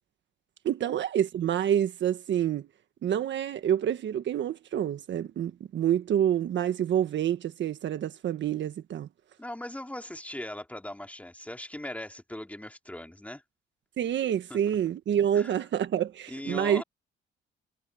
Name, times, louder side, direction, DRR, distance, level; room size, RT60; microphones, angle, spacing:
voice 1, 0.6-2.7 3.0-9.1 14.0-16.8, right 10 dB, 65° right, 1.5 m, -27 dB
voice 2, 9.4-13.4 14.5-14.6 15.3-15.7 16.3-16.8, left 1 dB, 5° left, 2.9 m, -39 dB
cardioid pair, 90°, 20 cm